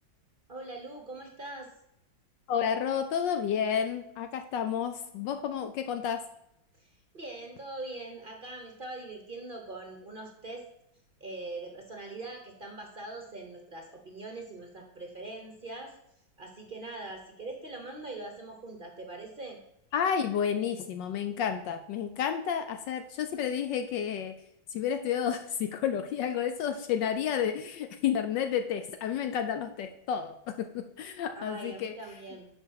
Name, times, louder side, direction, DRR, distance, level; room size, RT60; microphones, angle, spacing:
voice 1, 0.5-1.7 6.8-10.7 11.2-16.0 16.4-19.6 31.4-32.5, right 2 dB, 40° right, 3 dB, 0.8 m, -42 dB
voice 2, 2.5-6.2 19.9-24.3 24.7-31.9, left 8 dB, 75° left, 7 dB, 1.2 m, -31 dB
9.5 x 5.5 x 4.7 m, 0.78 s
omnidirectional pair, 2.2 m